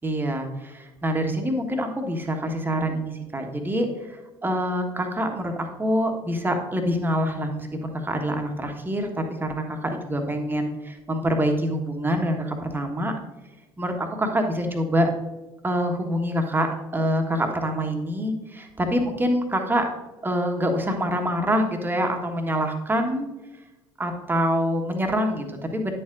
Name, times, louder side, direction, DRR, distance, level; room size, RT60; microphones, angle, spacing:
voice 1, 0.0-13.1 13.8-15.1 15.6-19.9 20.2-23.3 24.0-25.9, equal, 15° right, 4 dB, 1.3 m, -25 dB
10.0 x 7.4 x 2.5 m, 1.1 s
figure-of-eight pair, 60°, 13 cm